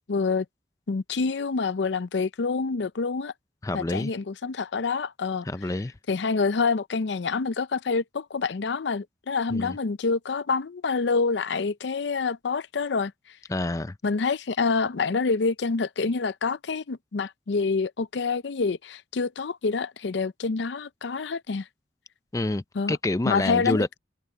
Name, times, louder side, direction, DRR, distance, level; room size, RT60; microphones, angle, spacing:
voice 1, 0.1-0.5 0.9-3.3 3.7-5.5 6.1-13.1 14.0-21.7 22.8-22.9 23.3-24.0, left 4 dB, 75° left, 0.5 m, -27 dB
voice 2, 3.6-4.1 5.4-5.9 9.5-9.8 13.5-14.0 22.3-22.6 22.9-23.9, left 2 dB, 20° left, 0.4 m, -27 dB
head